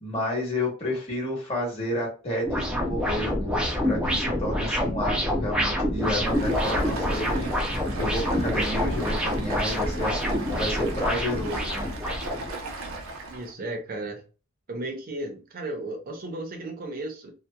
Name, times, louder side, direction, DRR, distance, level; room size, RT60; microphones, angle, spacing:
voice 1, 0.0-7.5 8.0-11.9, left 1 dB, 30° left, 1.2 m, -31 dB
sound 1, 2.4-12.5, equal, 5° right, 0.4 m, -27 dB
Stream, 5.9-13.5, right 2 dB, 90° right, 0.6 m, -35 dB
voice 2, 13.3-14.2 14.7-17.3, right 2 dB, 45° right, 0.6 m, -34 dB
2.7 x 2.1 x 2.2 m
head